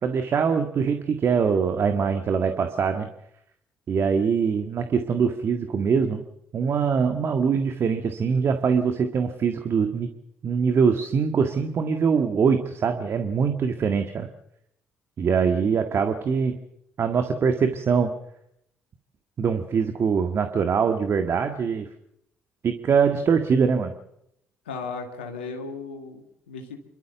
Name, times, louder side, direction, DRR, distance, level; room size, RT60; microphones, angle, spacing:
voice 1, 0.0-3.1 3.9-6.2 6.5-10.1 10.4-14.3 15.2-16.6 17.0-18.1 19.4-21.9 22.6-23.9, right 6 dB, 50° right, 7 dB, 1.8 m, -23 dB
voice 2, 24.7-26.8, left 4 dB, 90° left, 2 dB, 2.2 m, -36 dB
28.5 x 13.0 x 7.0 m, 0.77 s
hypercardioid pair, 50°, 5 cm